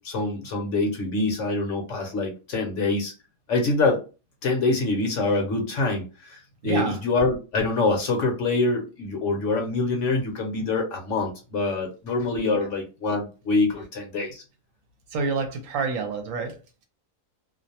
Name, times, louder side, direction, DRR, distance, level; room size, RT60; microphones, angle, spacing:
voice 1, 0.0-3.1 3.5-4.0 4.4-14.4, left 3 dB, 60° left, 0.9 m, -25 dB
voice 2, 6.6-7.0 12.6-12.7 15.1-16.6, right 4 dB, 70° right, 0.9 m, -28 dB
2.5 x 2.0 x 2.7 m
omnidirectional pair, 1.6 m